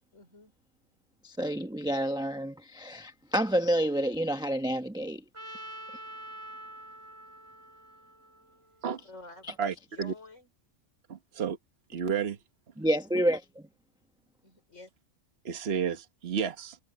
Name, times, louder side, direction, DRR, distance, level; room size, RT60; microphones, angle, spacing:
voice 1, 0.1-0.5 9.0-10.5 14.4-14.9, left 2 dB, 70° left, 5.4 m, -50 dB
voice 2, 1.2-5.2 12.8-13.6, right 1 dB, 5° right, 0.9 m, -29 dB
Trumpet, 5.3-9.4, right 1 dB, 20° right, 4.5 m, -46 dB
voice 3, 9.6-10.1 11.1-11.6 11.9-12.4 15.4-16.8, right 7 dB, 50° right, 1.5 m, -31 dB
omnidirectional pair, 1.3 m